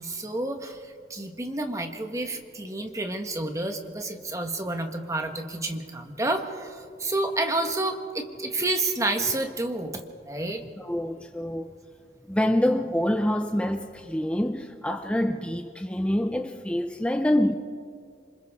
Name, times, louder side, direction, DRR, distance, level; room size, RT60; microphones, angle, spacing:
voice 1, 0.0-10.6, right 2 dB, 20° right, 1.4 m, -30 dB
voice 2, 10.8-11.8 12.3-17.5, left 1 dB, 5° left, 0.6 m, -26 dB
27.0 x 26.0 x 3.7 m
head